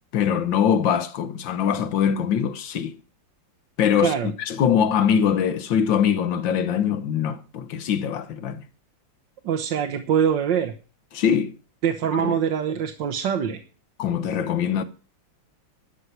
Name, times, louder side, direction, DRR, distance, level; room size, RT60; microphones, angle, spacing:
voice 1, 0.1-3.0 3.8-8.6 11.1-11.5 12.2-12.4 14.0-14.8, left 8 dB, 70° left, 1.8 m, -22 dB
voice 2, 4.0-4.3 9.4-10.7 11.8-13.6, right 8 dB, 70° right, 1.6 m, -23 dB
12.5 x 5.7 x 8.1 m
omnidirectional pair, 2.2 m